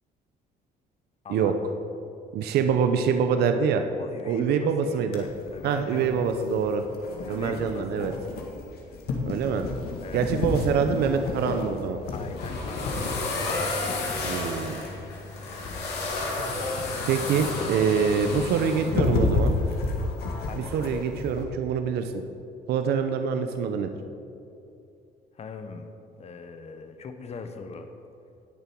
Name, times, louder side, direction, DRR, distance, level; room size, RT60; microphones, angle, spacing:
voice 1, 1.2-1.6 3.9-6.3 7.1-8.1 10.0-10.3 12.1-13.2 16.8-17.3 17.7-18.7 20.5-21.0 25.3-25.9 26.2-27.9, left 4 dB, 40° left, 7 dB, 1.1 m, -41 dB
voice 2, 2.3-3.8 4.2-5.3 5.6-6.8 7.3-8.1 9.3-9.7 10.1-12.0 14.2-14.8 17.1-19.5 20.5-22.1 22.7-23.9, right 6 dB, 70° right, 7 dB, 0.8 m, -25 dB
sound 1, 5.1-21.4, left 3 dB, 65° left, 1.9 m, -32 dB
sound 2, 12.0-18.9, left 3 dB, 85° left, 2.9 m, -32 dB
19.0 x 6.9 x 4.7 m, 2.6 s
cardioid pair, 110°, 17 cm